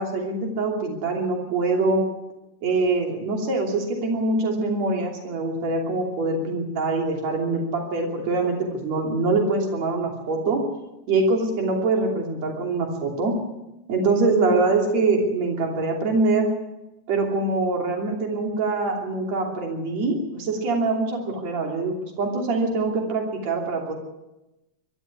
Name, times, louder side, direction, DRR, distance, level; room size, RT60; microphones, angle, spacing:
voice 1, 0.0-2.0 2.6-10.6 11.1-13.4 13.9-16.5 17.1-23.9, right 3 dB, 60° right, 2 dB, 4.2 m, -24 dB
22.0 x 13.0 x 9.8 m, 0.97 s
omnidirectional pair, 3.4 m